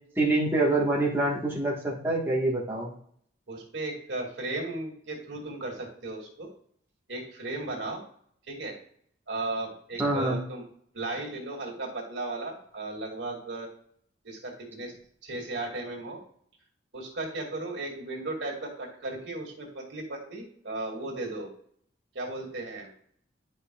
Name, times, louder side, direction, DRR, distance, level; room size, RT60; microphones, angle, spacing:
voice 1, 0.2-2.9 10.0-10.4, right 2 dB, 10° right, -4 dB, 1.3 m, -26 dB
voice 2, 3.5-6.5 7.1-8.0 8.5-8.8 9.3-10.6 10.9-13.7 14.2-14.9 15.2-16.2 16.9-21.5 22.1-22.9, right 2 dB, 70° right, -1 dB, 2.3 m, -35 dB
10.5 x 5.3 x 2.3 m, 0.63 s
head